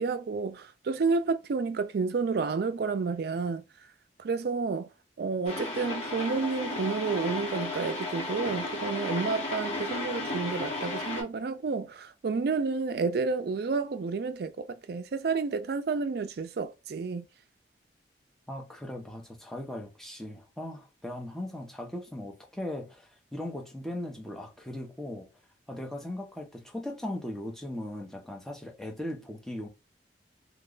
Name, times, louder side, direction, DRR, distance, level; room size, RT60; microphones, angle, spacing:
voice 1, 0.0-3.6 4.2-4.9 5.2-17.3, right 4 dB, 60° right, 0.4 m, -30 dB
sound 1, 5.5-11.2, left 2 dB, 35° left, 1.1 m, -34 dB
voice 2, 18.5-25.3 25.7-29.7, left 1 dB, ahead, 0.7 m, -38 dB
2.9 x 2.3 x 3.8 m
head